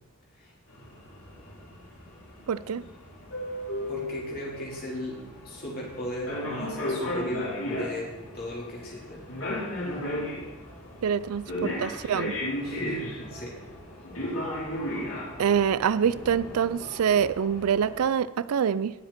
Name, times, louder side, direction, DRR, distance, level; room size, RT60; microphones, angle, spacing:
sound 1, 0.7-18.0, left 1 dB, 65° left, 4.4 m, -35 dB
voice 1, 2.5-2.8 11.0-12.3 15.4-18.9, right 7 dB, 80° right, 16 dB, 0.4 m, -25 dB
voice 2, 3.9-5.2 5.4-8.1 8.3-9.2 12.6-13.5, left 1 dB, 45° left, -4 dB, 4.4 m, -37 dB
19.0 x 7.6 x 4.4 m, 1.1 s
head